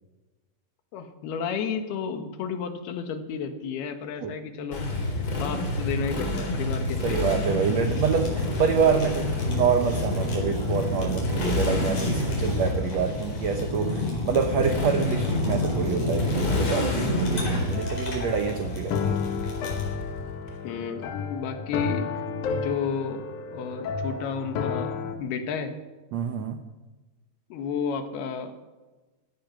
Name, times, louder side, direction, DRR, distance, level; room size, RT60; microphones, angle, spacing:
voice 1, 0.9-4.9 5.4-7.2 20.6-22.1 22.5-25.7 27.5-28.5, left 6 dB, 80° left, 7 dB, 3.4 m, -32 dB
Motorcycle, 4.7-20.5, left 2 dB, 30° left, 2.2 m, -30 dB
Fire, 4.8-19.9, left 2 dB, 50° left, 5.6 m, -32 dB
voice 2, 7.0-19.2 26.1-26.6, right 7 dB, 80° right, 6 dB, 1.5 m, -26 dB
sound 1, 17.7-25.1, left 6 dB, 65° left, 2.1 m, -31 dB
17.5 x 14.0 x 5.9 m, 1.2 s
omnidirectional pair, 4.5 m